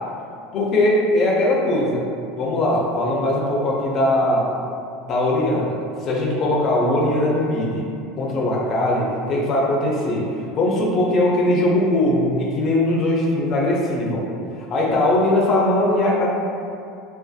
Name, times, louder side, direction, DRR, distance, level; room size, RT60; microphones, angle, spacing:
voice 1, 0.5-2.0 2.4-4.5 5.0-7.9 8.2-10.3 10.6-14.3 14.7-16.3, left 1 dB, 30° left, -3 dB, 0.4 m, -20 dB
2.5 x 2.2 x 2.3 m, 2.5 s
cardioid pair, 170°, 0 cm